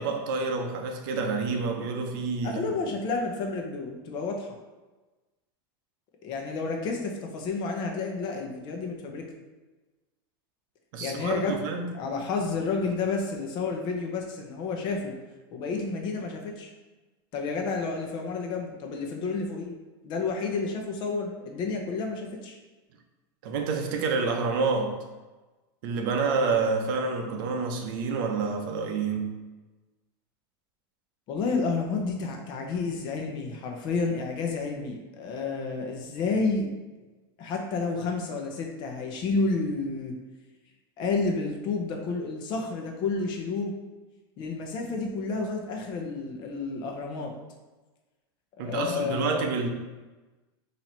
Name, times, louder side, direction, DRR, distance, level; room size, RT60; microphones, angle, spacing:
voice 1, 0.0-2.6 10.9-11.9 23.4-25.0 25.8-29.4 48.6-49.7, right 4 dB, 60° right, 4 dB, 0.7 m, -28 dB
voice 2, 2.4-4.5 6.2-9.2 11.0-11.5 11.9-15.1 15.5-16.7 17.3-19.8 20.0-22.6 31.3-36.7 37.4-40.1 41.0-43.8 44.4-47.3 48.6-49.5, left 4 dB, 35° left, 2 dB, 0.8 m, -30 dB
4.4 x 2.7 x 4.4 m, 1.2 s
supercardioid pair, 160°, 13 cm